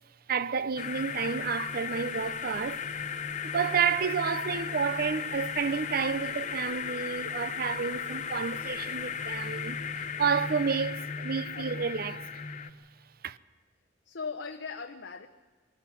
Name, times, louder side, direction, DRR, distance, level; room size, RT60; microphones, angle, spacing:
voice 1, 0.3-2.8 3.4-12.4 13.2-13.4, right 6 dB, 55° right, 0.6 m, -30 dB
sound 1, 0.8-12.7, left 6 dB, 40° left, 0.8 m, -36 dB
voice 2, 1.8-2.2 4.5-4.8 11.5-11.9 14.0-15.3, left 5 dB, 75° left, 0.8 m, -41 dB
21.5 x 14.0 x 9.9 m
head